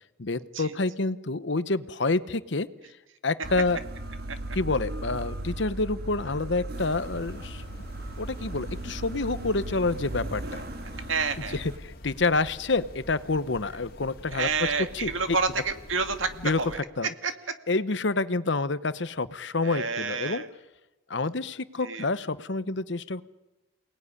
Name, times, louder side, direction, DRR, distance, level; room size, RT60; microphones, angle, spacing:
voice 1, 0.2-2.7 3.2-3.8 4.5-7.6 8.2-10.6 11.5-14.5 15.0-15.1 16.4-16.6 17.0-17.1 17.7-20.4 21.1-23.2, left 3 dB, 65° left, 14 dB, 0.9 m, -28 dB
sound 1, 3.4-11.8, right 1 dB, 50° right, 1.8 m, -37 dB
sound 2, 6.8-16.8, left 1 dB, 50° left, 2.5 m, -46 dB
voice 2, 11.1-11.6 14.3-17.3 19.6-20.5 21.8-22.1, right 4 dB, 80° right, 8 dB, 2.1 m, -29 dB
29.0 x 19.0 x 9.8 m, 1.1 s
head